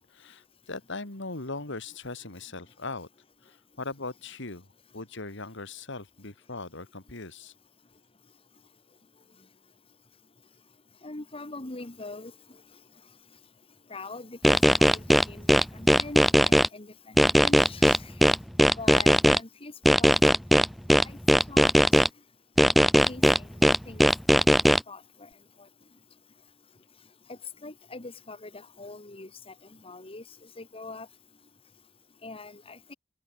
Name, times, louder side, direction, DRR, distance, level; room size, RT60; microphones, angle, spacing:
voice 1, 0.0-3.1 3.4-4.7 4.9-7.5, left 3 dB, 65° left, 2.7 m, -39 dB
voice 2, 11.0-12.3 13.9-18.2 18.8-19.7 20.0-20.2 21.0-21.2 21.5-22.0 23.1-23.5 23.9-25.3 27.3-29.5 29.8-30.2 30.6-31.1 32.2-32.9, left 3 dB, 30° left, 1.8 m, -42 dB
sound 1, 14.4-16.7 17.2-19.4 19.9-22.1 22.6-24.8, equal, ahead, 0.7 m, -19 dB
head